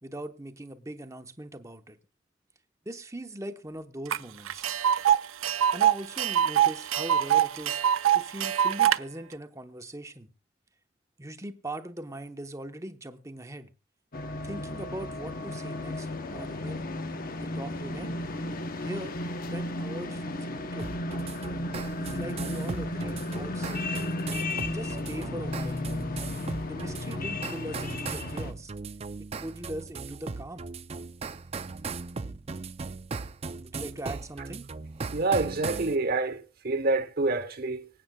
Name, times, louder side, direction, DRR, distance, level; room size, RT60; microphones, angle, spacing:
voice 1, 0.0-2.0 2.8-4.7 5.7-7.8 8.1-10.3 11.2-13.7 14.4-16.9 17.4-18.2 18.8-19.2 19.5-20.9 22.0-24.0 24.6-25.9 26.6-28.7 29.2-30.7 33.6-34.6, right 1 dB, 15° right, 0.9 m, -40 dB
Tick, 4.1-4.2 4.5-9.0, right 10 dB, 85° right, 0.5 m, -23 dB
sound 1, 14.1-28.5, left 1 dB, 45° left, 0.9 m, -34 dB
sound 2, 20.8-36.0, right 4 dB, 30° right, 0.5 m, -38 dB
voice 2, 35.1-37.9, right 3 dB, 50° right, 1.2 m, -27 dB
25.0 x 8.6 x 2.3 m
head